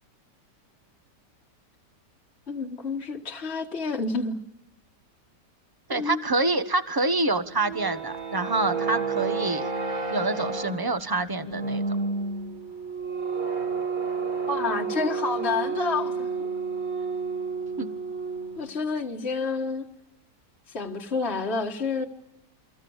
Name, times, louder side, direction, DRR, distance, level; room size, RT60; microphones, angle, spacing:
voice 1, 2.5-4.4 5.9-6.2 14.5-16.5 18.6-19.8 20.7-22.0, left 4 dB, 40° left, 0 dB, 1.9 m, -29 dB
voice 2, 5.9-9.6 10.1-11.8 17.8-17.9, right 2 dB, 15° right, 10 dB, 1.0 m, -26 dB
sound 1, 7.5-18.7, right 4 dB, 50° right, 2.5 m, -30 dB
29.0 x 25.5 x 7.2 m, 0.83 s
omnidirectional pair, 1.9 m